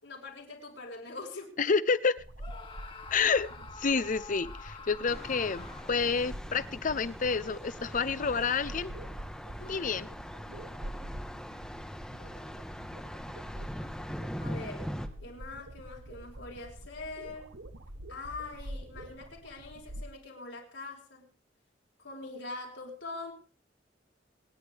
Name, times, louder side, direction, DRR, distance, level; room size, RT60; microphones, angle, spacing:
voice 1, 0.0-1.5 9.6-9.8 12.2-12.5 14.4-14.9 15.2-17.5 18.1-21.3 22.0-23.3, left 3 dB, 90° left, 0 dB, 4.8 m, -43 dB
voice 2, 1.6-2.1 3.1-3.5 3.8-8.9 9.7-10.1, left 5 dB, 45° left, 16 dB, 0.6 m, -29 dB
sound 1, 2.2-20.1, right 1 dB, 85° right, 1.4 m, -46 dB
Screaming, 2.4-6.2, left 4 dB, 30° left, 1.5 m, -47 dB
Thunder, 5.0-15.1, equal, 5° left, 1.1 m, -42 dB
26.5 x 10.0 x 3.4 m, 0.40 s
head